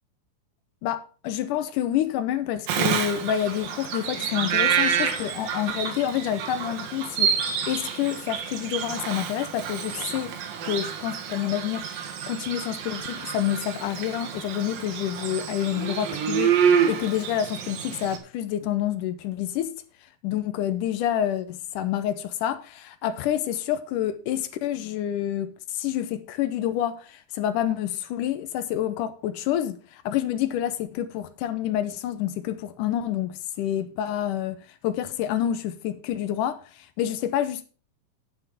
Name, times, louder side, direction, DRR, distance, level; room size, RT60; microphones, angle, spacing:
voice 1, 0.8-10.4 10.6-19.7 20.2-37.6, left 11 dB, 75° left, 2.1 m, -28 dB
Bird vocalization bird call bird song, 2.7-18.2, right 7 dB, 75° right, 3.1 m, -28 dB
9.5 x 8.0 x 5.0 m
omnidirectional pair, 4.1 m